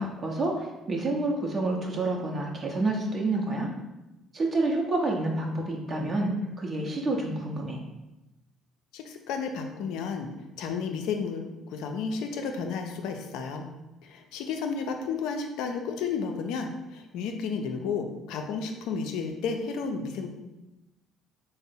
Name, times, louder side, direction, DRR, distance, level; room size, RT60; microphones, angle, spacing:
voice 1, 0.0-3.7 4.3-7.8, right 2 dB, 45° right, -1 dB, 0.6 m, -28 dB
voice 2, 8.9-13.6 14.0-20.3, left 5 dB, 75° left, 5 dB, 0.4 m, -32 dB
3.5 x 2.0 x 4.0 m, 0.98 s
hypercardioid pair, 60°, 0 cm